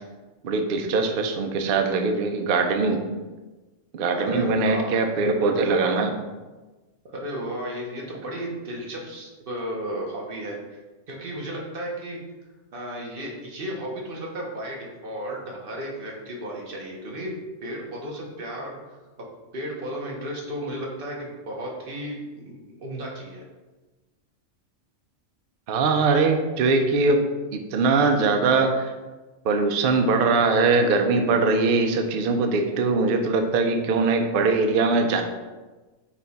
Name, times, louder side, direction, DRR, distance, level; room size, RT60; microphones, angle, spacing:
voice 1, 0.4-3.0 3.9-6.2 25.7-27.2 27.5-28.9 29.4-35.2, right 3 dB, 65° right, 5 dB, 0.5 m, -21 dB
voice 2, 4.2-4.9 7.1-10.8 11.1-12.2 12.7-17.3 17.6-18.7 19.5-23.4, right 1 dB, 50° right, -1 dB, 0.9 m, -34 dB
5.6 x 2.3 x 4.0 m, 1.2 s
omnidirectional pair, 1.4 m